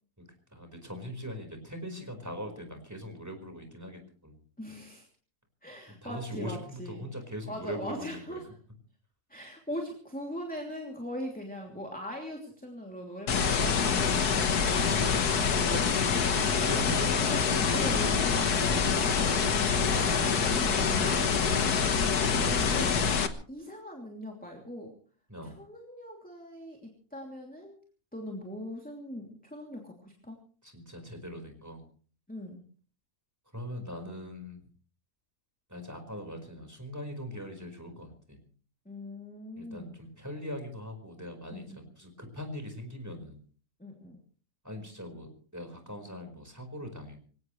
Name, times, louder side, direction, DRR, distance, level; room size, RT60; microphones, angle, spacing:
voice 1, 0.5-4.4 5.9-8.4 13.8-14.0 14.3-15.3 15.6-18.3 25.3-25.6 30.6-31.8 33.5-34.7 35.7-38.4 39.6-43.4 44.6-47.2, equal, 10° right, 5 dB, 4.8 m, -41 dB
voice 2, 4.6-5.1 5.6-7.0 7.5-8.4 9.3-14.4 16.8-19.4 19.7-19.8 20.1-21.3 22.2-25.0 25.4-27.8 28.1-30.4 32.3-32.7 38.8-39.9 41.5-41.8 43.8-44.2, equal, 5° left, 1 dB, 2.9 m, -41 dB
sound 1, 13.3-23.3, left 6 dB, 85° left, 1.9 m, -26 dB
26.0 x 17.0 x 3.2 m, 0.43 s
omnidirectional pair, 1.6 m